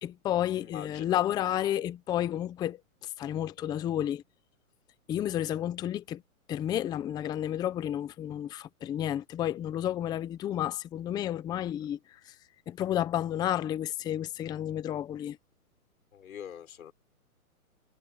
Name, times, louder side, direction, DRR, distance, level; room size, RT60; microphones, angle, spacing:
voice 1, 0.0-4.2 5.1-6.2 6.5-12.3 12.7-15.4, left 11 dB, 10° left, 0.7 m, -31 dB
voice 2, 0.6-1.2 16.1-16.9, left 9 dB, 65° left, 4.9 m, -44 dB
hypercardioid pair, 145°, 44 cm